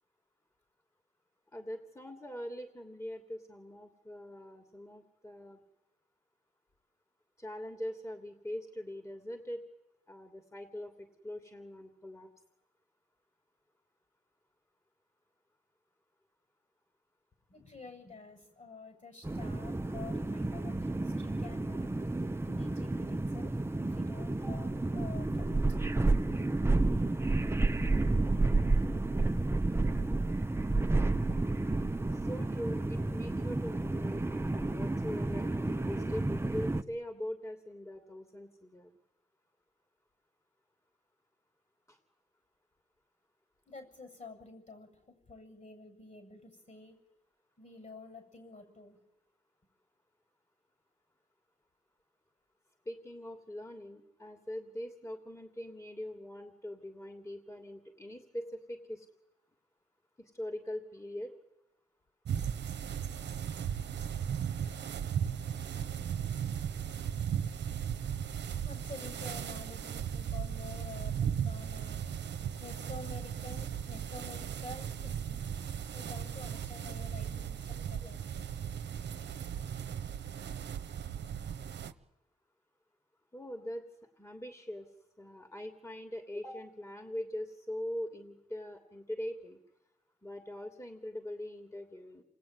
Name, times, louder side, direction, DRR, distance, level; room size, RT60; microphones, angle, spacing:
voice 1, 1.5-5.6 7.4-9.6 10.1-12.3 24.4-24.5 32.1-38.9 41.9-42.0 52.8-59.1 60.2-61.3 83.3-83.8 84.2-84.9 85.2-89.6 90.2-92.2, left 1 dB, 15° left, 5 dB, 2.8 m, -42 dB
voice 2, 17.5-21.9 22.4-25.6 43.7-47.0 47.6-49.0 68.6-72.0 72.6-75.5 75.9-78.2, left 3 dB, 45° left, 6 dB, 7.9 m, -49 dB
sound 1, 19.2-36.8, right 2 dB, 15° right, 1.0 m, -31 dB
sound 2, 62.2-81.9, right 8 dB, 75° right, 1.1 m, -37 dB
28.0 x 20.0 x 9.5 m, 1.0 s
cardioid pair, 65°, 18 cm